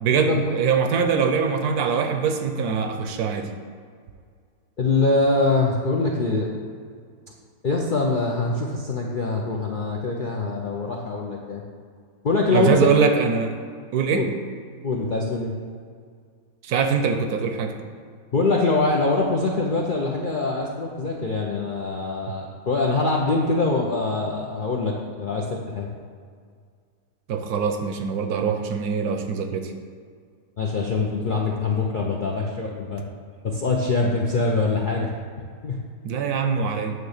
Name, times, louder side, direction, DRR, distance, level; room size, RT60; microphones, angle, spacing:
voice 1, 0.0-3.5 12.5-13.5 13.9-14.3 16.6-17.7 27.3-29.7 36.0-36.9, right 6 dB, 75° right, 6 dB, 1.2 m, -23 dB
voice 2, 4.8-6.5 7.6-11.6 12.2-12.9 14.1-14.3 14.8-15.5 18.3-25.9 30.6-33.1 33.4-35.1 35.6-35.8, left 3 dB, 60° left, -2 dB, 0.5 m, -23 dB
9.2 x 3.3 x 6.5 m, 2.1 s
omnidirectional pair, 1.7 m